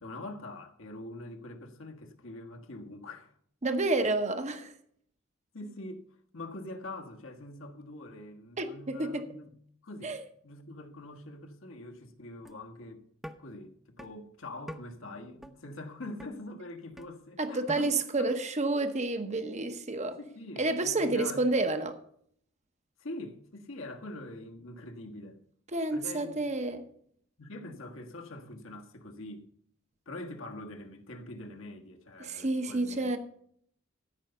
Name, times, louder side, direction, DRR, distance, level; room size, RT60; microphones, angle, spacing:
voice 1, 0.0-3.3 5.5-6.1 6.3-9.5 9.8-10.2 10.4-13.0 13.4-18.0 20.0-21.4 23.0-25.4 25.9-26.4 27.4-29.5 30.0-33.1, left 2 dB, 70° left, 1.5 m, -44 dB
voice 2, 3.6-4.7 8.6-9.2 10.0-10.2 17.4-20.2 20.6-22.0 25.7-26.9 32.2-33.2, right 2 dB, 35° right, 0.9 m, -29 dB
sound 1, 12.5-12.6 13.2-13.4 14.0-14.1 14.7-14.8 15.4-15.6 16.2-16.3 17.0-17.1 17.7-17.8, equal, ahead, 0.7 m, -42 dB
13.5 x 5.5 x 6.9 m
head